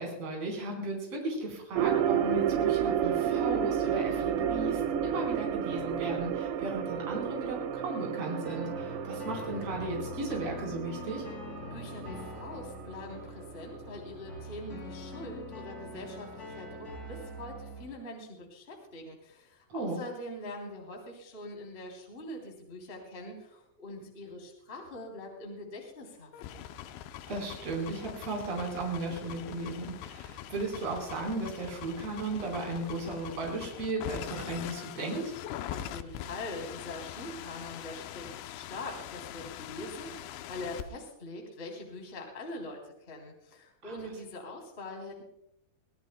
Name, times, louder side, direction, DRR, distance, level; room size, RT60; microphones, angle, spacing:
voice 1, 0.0-11.2 19.7-20.0 27.3-35.2 43.8-43.9, right 2 dB, 35° right, -1 dB, 4.9 m, -35 dB
sound 1, 1.8-14.0 14.3-14.4, right 9 dB, 75° right, 2.9 m, -31 dB
sound 2, 8.4-17.9, left 2 dB, 30° left, 1.8 m, -44 dB
voice 2, 11.7-26.7 35.7-45.2, left 1 dB, 15° left, 0 dB, 2.5 m, -43 dB
sound 3, 26.3-40.8, left 11 dB, 80° left, 2.9 m, -43 dB
23.5 x 17.5 x 2.2 m, 0.76 s
omnidirectional pair, 5.5 m